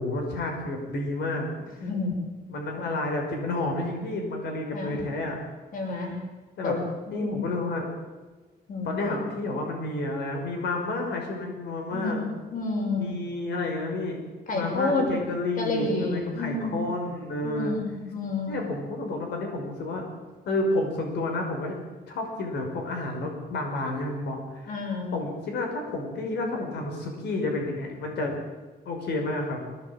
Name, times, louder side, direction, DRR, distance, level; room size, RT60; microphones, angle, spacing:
voice 1, 0.0-1.5 1.8-1.9 2.5-5.4 6.6-6.7 7.1-7.9 8.8-12.2 13.0-14.2 14.5-17.7 18.5-20.0 20.5-21.8 22.1-28.4 28.8-29.6, left 2 dB, 85° left, 2 dB, 5.7 m, -30 dB
voice 2, 1.8-2.1 2.8-2.9 4.7-4.9 5.7-6.1 6.6-6.8 7.1-7.3 8.7-8.9 11.9-12.2 12.5-13.1 14.5-15.1 15.6-16.8 17.4-18.5 24.7-25.1, left 3 dB, 50° left, 1 dB, 6.5 m, -29 dB
23.0 x 18.5 x 8.9 m, 1.3 s
cardioid pair, 165°, 17 cm